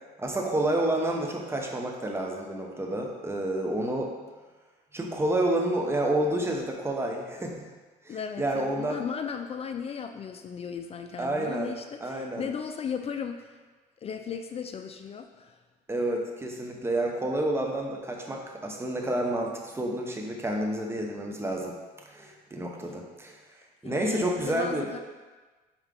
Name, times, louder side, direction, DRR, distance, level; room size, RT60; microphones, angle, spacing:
voice 1, 0.2-4.1 4.9-7.7 8.0-9.0 11.2-11.7 12.0-12.5 15.9-21.7 22.1-23.4 23.8-24.9, right 1 dB, 15° right, 0 dB, 0.9 m, -29 dB
voice 2, 8.1-13.6 14.0-15.6 23.8-25.0, left 7 dB, 35° left, 7 dB, 0.4 m, -36 dB
5.8 x 4.4 x 3.7 m, 1.3 s
cardioid pair, 110°, 17 cm